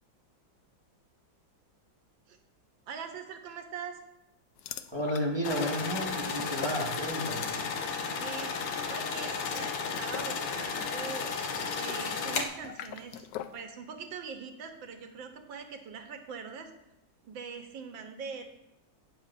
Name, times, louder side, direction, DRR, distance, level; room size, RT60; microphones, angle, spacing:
voice 1, 2.9-4.0 8.1-11.3 11.7-13.3 13.5-16.7 17.2-18.5, right 6 dB, 85° right, 5 dB, 1.7 m, -42 dB
sound 1, 4.6-7.5 7.8-8.1 9.2-13.6, left 10 dB, 75° left, 0.9 m, -44 dB
voice 2, 4.9-7.6, equal, 15° right, -1 dB, 1.1 m, -32 dB
sound 2, 5.4-12.5, left 5 dB, 90° left, 1.7 m, -33 dB
17.5 x 6.6 x 2.5 m, 0.93 s
omnidirectional pair, 2.1 m